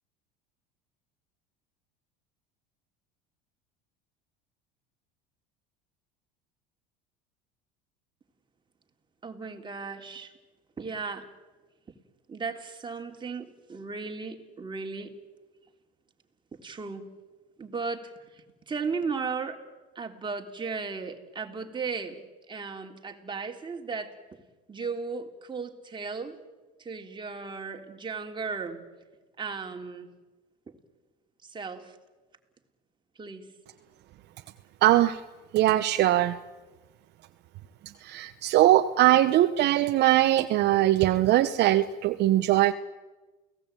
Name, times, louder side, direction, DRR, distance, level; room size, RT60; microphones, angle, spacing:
voice 1, 9.2-10.3 10.8-11.3 12.3-15.1 16.6-17.1 17.6-19.6 19.9-22.2 22.5-24.4 24.7-26.4 26.8-28.8 29.4-30.1 30.7-30.8 31.4-32.0 33.2-33.5, right 4 dB, 20° right, 3 dB, 3.3 m, -36 dB
voice 2, 34.8-35.2 35.5-36.4 38.0-42.7, right 14 dB, 55° right, 9 dB, 1.0 m, -21 dB
29.5 x 18.0 x 9.0 m, 1.2 s
supercardioid pair, 100°, 21 cm